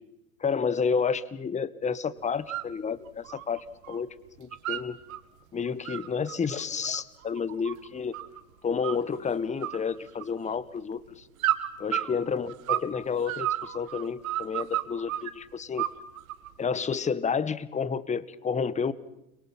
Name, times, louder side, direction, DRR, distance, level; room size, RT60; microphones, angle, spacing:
voice 1, 0.4-4.1 4.4-5.0 5.5-8.2 8.6-11.3 11.8-15.9 16.6-18.9, left 6 dB, 15° left, 17 dB, 1.2 m, -30 dB
sound 1, 2.3-2.7 3.1-4.0 4.3-5.2 5.6-8.4 8.8-9.3 9.6-10.6 11.4-12.9 13.2-15.3 15.8-16.5, right 13 dB, 70° right, 1.9 m, -32 dB
30.0 x 23.0 x 5.7 m, 0.87 s
hypercardioid pair, 95°, 43 cm